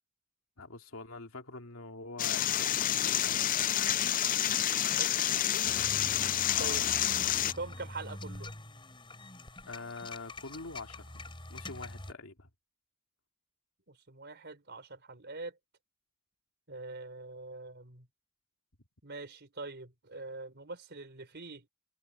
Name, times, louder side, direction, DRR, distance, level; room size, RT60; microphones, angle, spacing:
voice 1, 0.6-3.6 6.5-6.8 9.7-12.5, left 3 dB, 85° left, 2.6 m, -45 dB
sound 1, 2.2-7.5, left 11 dB, 40° left, 0.5 m, -29 dB
voice 2, 4.7-5.7 6.6-6.9 7.5-8.5 13.9-15.6 16.7-18.1 19.0-21.7, right 3 dB, 55° right, 4.3 m, -44 dB
sound 2, 5.6-12.1, left 1 dB, 25° left, 4.9 m, -45 dB
head